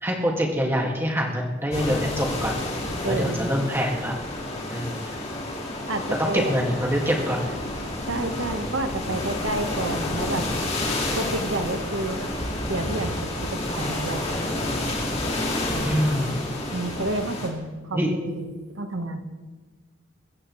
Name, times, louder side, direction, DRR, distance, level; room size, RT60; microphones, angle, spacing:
voice 1, 0.0-2.6 3.0-4.2 4.7-5.0 6.2-7.5 15.8-16.3 17.9-18.2, equal, 10° right, -1 dB, 2.0 m, -25 dB
sound 1, 1.7-17.5, left 1 dB, 30° left, 2.7 m, -29 dB
voice 2, 3.0-3.5 4.9-5.0 5.9-6.5 8.1-10.5 11.2-12.2 12.7-14.4 16.7-19.2, right 2 dB, 75° right, 7 dB, 1.3 m, -30 dB
22.5 x 14.5 x 3.2 m, 1.3 s
head